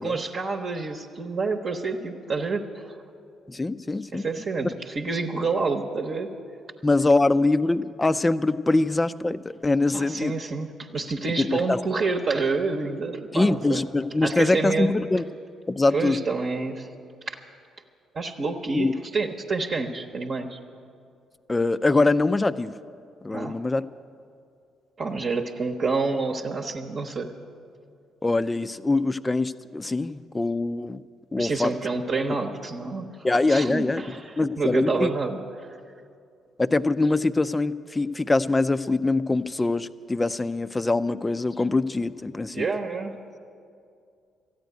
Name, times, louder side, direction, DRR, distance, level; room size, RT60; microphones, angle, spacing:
voice 1, 0.0-2.9 4.1-6.3 9.9-13.8 14.2-14.9 15.9-16.9 17.3-17.4 18.1-20.6 23.3-23.6 25.0-27.3 31.4-33.1 33.5-35.4 42.5-43.1, right 4 dB, 50° right, 1 dB, 0.9 m, -28 dB
voice 2, 3.5-4.3 6.8-10.4 11.4-11.8 13.3-15.2 15.7-16.2 18.7-18.9 21.5-22.8 23.2-23.8 28.2-31.0 31.3-31.7 33.2-34.0 34.4-35.1 36.6-42.7, left 2 dB, 20° left, 14 dB, 0.5 m, -23 dB
14.0 x 9.2 x 9.3 m, 2.4 s
hypercardioid pair, 45°, 0 cm